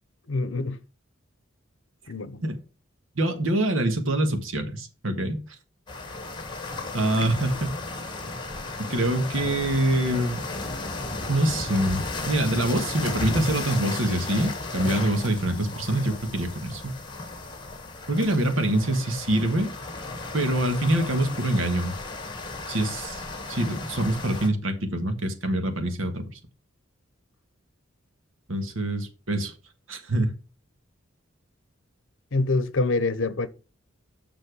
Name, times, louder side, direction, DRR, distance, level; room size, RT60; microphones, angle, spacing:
voice 1, 0.3-0.8 2.1-2.4 32.3-33.5, left 3 dB, 70° left, 0.8 m, -25 dB
voice 2, 3.2-5.4 6.9-7.7 8.8-10.4 11.3-17.0 18.1-19.7 20.3-21.9 22.7-26.3 28.5-29.5 29.9-30.3, right 1 dB, 75° right, 1.7 m, -25 dB
sound 1, 5.9-24.5, left 3 dB, 25° left, 1.8 m, -35 dB
7.0 x 6.0 x 4.8 m
head